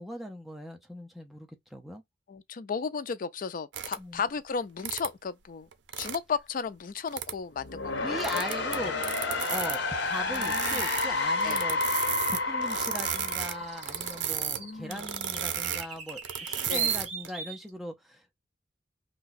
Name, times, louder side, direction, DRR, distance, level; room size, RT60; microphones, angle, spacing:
voice 1, 0.0-2.0 4.0-4.2 8.0-8.9 9.5-11.8 12.3-18.4, equal, ahead, 0.6 m, -39 dB
voice 2, 2.3-5.7 6.0-8.2 10.2-10.8 11.4-11.6 14.5-15.1 16.7-17.0, left 5 dB, 50° left, 0.4 m, -35 dB
sound 1, 3.7-4.0 4.8-5.1 5.7-6.2 7.1-7.4 8.2-9.8 10.2-11.1 11.4-14.6 14.9-17.3, right 9 dB, 75° right, 0.5 m, -33 dB
sound 2, 7.5-14.5, left 3 dB, 70° left, 0.8 m, -30 dB
sound 3, 8.7-8.9 11.4-11.5 13.1-17.7, right 6 dB, 40° right, 1.1 m, -37 dB
2.7 x 2.2 x 3.9 m
head